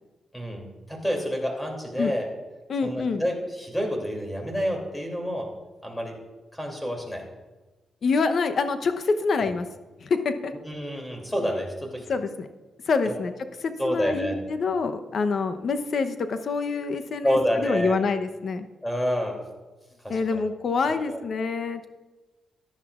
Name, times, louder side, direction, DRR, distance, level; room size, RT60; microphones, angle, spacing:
voice 1, 0.3-2.3 2.8-5.5 5.8-6.2 6.5-7.2 9.4-9.5 10.6-12.1 13.0-13.1 13.8-14.4 17.2-18.0 18.8-19.4 20.0-20.4 20.8-21.2, equal, 5° left, 1 dB, 2.8 m, -28 dB
voice 2, 2.7-3.2 8.0-9.7 10.0-10.5 12.1-12.5 12.9-13.3 13.6-18.6 20.1-21.9, left 4 dB, 60° left, 9 dB, 0.8 m, -26 dB
14.5 x 10.5 x 2.5 m, 1.2 s
cardioid pair, 80°, 0 cm